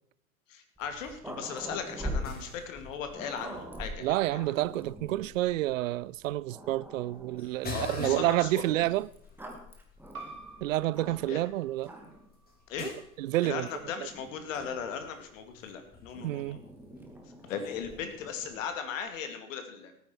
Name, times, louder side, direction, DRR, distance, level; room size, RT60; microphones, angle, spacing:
voice 1, 0.5-4.5 7.7-8.7 11.3-11.4 12.7-12.9 13.4-16.6 17.5-19.9, left 7 dB, 60° left, 2.6 m, -38 dB
Growling, 0.8-5.3 6.0-6.1 6.5-7.6 8.6-11.5 11.8-12.3 13.2-15.0 16.1-18.7, equal, 5° right, 2.3 m, -43 dB
sound 1, 1.6-18.6, left 3 dB, 20° left, 3.6 m, -48 dB
voice 2, 4.0-9.1 10.6-11.9 12.8-12.9 13.2-13.7 16.2-16.6, right 16 dB, 65° right, 0.5 m, -29 dB
sound 2, 10.1-15.3, right 3 dB, 80° right, 2.4 m, -51 dB
18.0 x 9.6 x 4.6 m
figure-of-eight pair, 95°, 44 cm